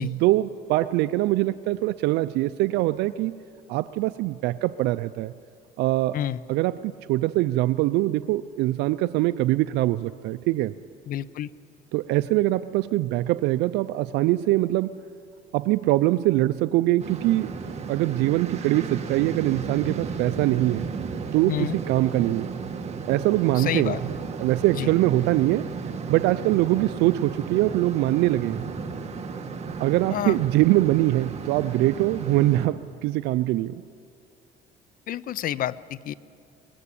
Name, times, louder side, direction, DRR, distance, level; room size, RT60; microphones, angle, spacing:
voice 1, 0.0-3.3 3.7-5.3 5.8-6.2 6.5-10.7 11.9-15.0 15.5-17.5 17.9-20.9 21.3-22.5 23.1-24.1 24.4-25.7 26.1-28.7 29.8-33.7, right 16 dB, 90° right, 11 dB, 0.5 m, -23 dB
voice 2, 11.1-11.5 21.5-21.8 23.6-24.0 24.8-24.9 30.1-30.4 35.1-36.1, left 11 dB, 55° left, 19 dB, 0.6 m, -29 dB
sound 1, 17.0-32.7, right 5 dB, 40° right, 2.0 m, -34 dB
23.0 x 19.5 x 8.5 m, 2.4 s
cardioid pair, 110°, 17 cm